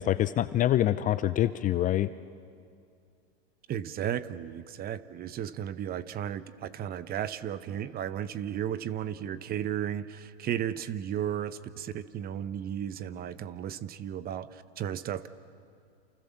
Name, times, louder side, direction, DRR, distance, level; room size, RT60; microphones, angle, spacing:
voice 1, 0.0-2.1, left 13 dB, 25° left, 14 dB, 0.6 m, -25 dB
voice 2, 3.7-15.3, right 10 dB, 30° right, 14 dB, 1.0 m, -34 dB
29.0 x 29.0 x 7.2 m, 2.3 s
hypercardioid pair, 125°, 33 cm